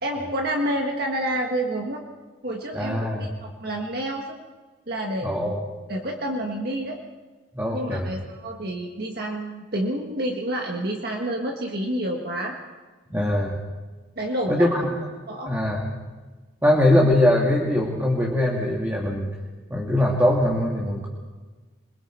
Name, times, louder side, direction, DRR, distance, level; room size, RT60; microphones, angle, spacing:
voice 1, 0.0-2.0 2.4-4.4 4.9-5.6 5.9-7.0 7.7-12.6 14.2-14.7 15.3-15.5, right 1 dB, 50° right, 1 dB, 1.7 m, -29 dB
voice 2, 2.7-3.3 5.2-5.6 7.5-8.1 13.1-13.6 14.5-14.9 15.5-15.9 16.6-19.3 19.7-21.1, left 1 dB, 10° right, -2 dB, 2.0 m, -22 dB
27.5 x 21.5 x 4.5 m, 1.3 s
head